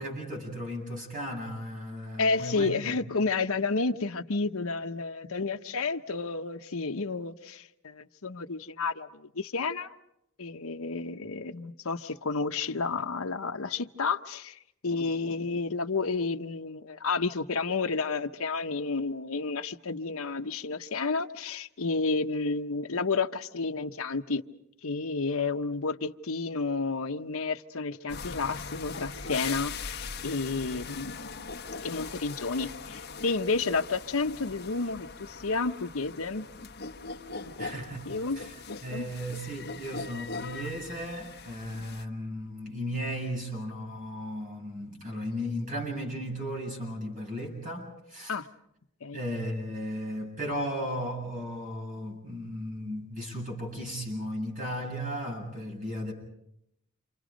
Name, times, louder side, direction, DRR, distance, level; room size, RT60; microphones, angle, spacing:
voice 1, 0.0-3.2 37.6-38.5 38.8-48.4 49.1-56.1, equal, 40° right, 0 dB, 7.9 m, -35 dB
voice 2, 2.2-9.9 10.4-24.4 24.8-31.4 31.8-36.5 37.4-37.7 38.1-38.4 38.7-39.0 48.3-48.5 49.0-49.2, left 4 dB, 75° left, 6 dB, 1.1 m, -31 dB
sound 1, 28.1-42.0, left 4 dB, 50° left, 1.2 m, -41 dB
29.0 x 27.0 x 5.2 m, 0.77 s
head